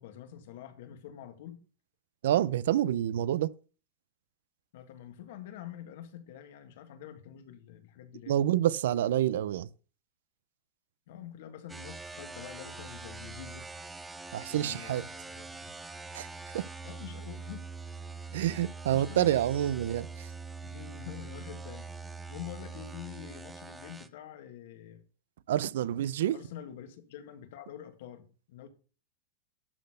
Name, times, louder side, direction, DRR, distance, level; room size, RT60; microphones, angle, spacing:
voice 1, 0.0-1.6 4.7-8.3 11.1-13.7 14.5-15.7 16.8-17.7 18.3-18.5 18.9-19.4 20.6-21.9 22.3-25.0 26.3-28.7, left 10 dB, 60° left, 1.7 m, -46 dB
voice 2, 2.2-3.5 8.3-9.7 14.3-15.0 16.1-16.3 16.5-16.6 18.3-20.3 25.5-26.4, right 12 dB, 75° right, 0.5 m, -28 dB
sound 1, 11.7-24.1, right 4 dB, 10° right, 0.5 m, -44 dB
12.0 x 4.1 x 6.5 m
supercardioid pair, 170°, 0 cm